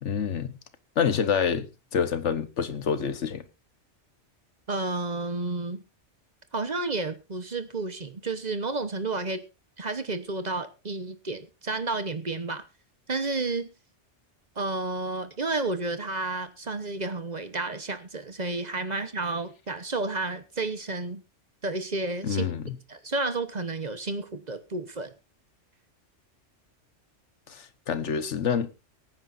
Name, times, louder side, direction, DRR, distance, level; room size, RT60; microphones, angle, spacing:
voice 1, 0.0-0.6 1.0-3.4 22.2-22.8 27.5-28.7, left 7 dB, 80° left, 1.4 m, -27 dB
voice 2, 4.7-5.8 6.5-9.4 9.8-12.6 13.1-13.7 14.6-21.2 21.6-22.5 22.9-25.1, right 3 dB, 40° right, 1.1 m, -31 dB
23.5 x 9.4 x 2.6 m
omnidirectional pair, 1.2 m